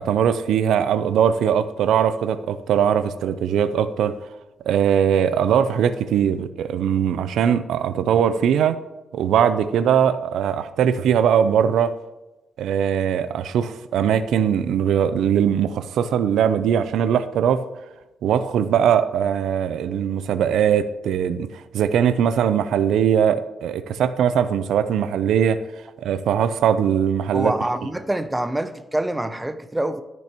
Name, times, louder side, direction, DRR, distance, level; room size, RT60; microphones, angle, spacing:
voice 1, 0.0-4.1 4.7-8.8 9.1-11.9 12.6-17.6 18.2-25.6 26.0-27.5, right 8 dB, 90° right, 12 dB, 0.5 m, -20 dB
voice 2, 27.3-30.0, right 1 dB, 10° right, 11 dB, 0.6 m, -25 dB
13.5 x 6.1 x 2.9 m, 1.0 s
cardioid pair, 110°, 0 cm